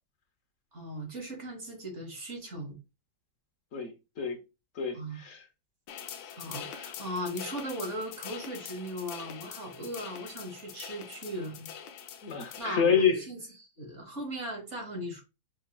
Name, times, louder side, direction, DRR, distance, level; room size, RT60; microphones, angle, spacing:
voice 1, 0.7-2.8 4.9-5.2 6.4-11.7 12.6-15.2, equal, 40° right, 1.5 m, -38 dB
voice 2, 3.7-4.4 4.8-5.4 12.2-13.2, left 6 dB, 55° left, 0.9 m, -28 dB
sound 1, 5.9-12.7, left 8 dB, 75° left, 1.2 m, -44 dB
6.2 x 3.2 x 2.3 m
omnidirectional pair, 2.2 m